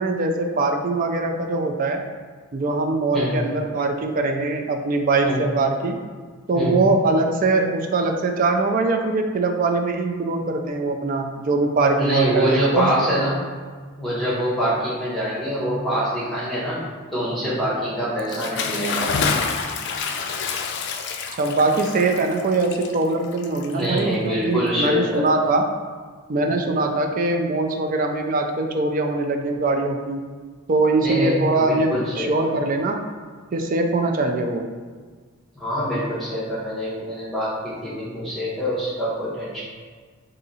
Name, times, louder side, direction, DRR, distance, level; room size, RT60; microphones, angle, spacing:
voice 1, 0.0-2.0 2.5-6.0 6.5-12.9 21.3-25.7 26.3-30.2 30.7-33.0 33.5-34.7, right 3 dB, 40° right, 4 dB, 0.3 m, -22 dB
voice 2, 3.1-3.4 5.2-5.4 6.5-6.8 11.9-13.4 14.0-16.8 17.1-19.3 23.7-25.3 31.0-32.5 35.5-39.6, equal, ahead, -9 dB, 1.0 m, -25 dB
Bathtub (filling or washing) / Splash splatter, 18.2-24.1, left 5 dB, 55° left, 0.3 m, -28 dB
3.8 x 2.6 x 4.1 m, 1.5 s
head